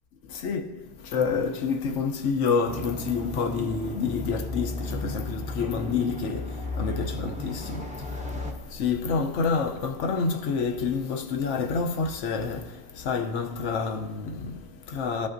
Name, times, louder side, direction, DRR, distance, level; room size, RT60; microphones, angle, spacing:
voice 1, 0.2-15.3, left 5 dB, 75° left, 1.1 m, -28 dB
sound 1, 2.7-8.5, left 2 dB, 5° right, 0.7 m, -35 dB
14.5 x 5.7 x 2.6 m
omnidirectional pair, 1.3 m